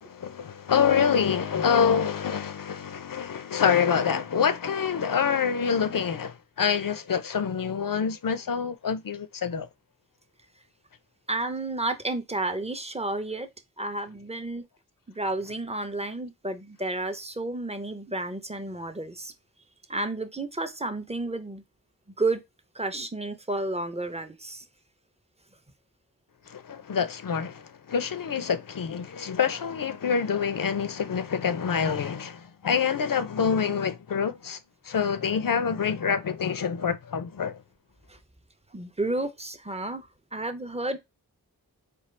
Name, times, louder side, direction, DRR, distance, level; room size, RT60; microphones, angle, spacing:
voice 1, 0.0-9.7 26.5-34.6 34.9-37.6, left 7 dB, 65° left, 0.5 m, -26 dB
voice 2, 11.3-13.5 13.8-14.6 15.1-19.3 19.9-21.6 22.2-22.4 22.7-24.6 38.1-38.2 38.7-41.0, right 2 dB, 15° right, 0.5 m, -31 dB
4.3 x 2.3 x 3.1 m
wide cardioid pair, 45°, 36 cm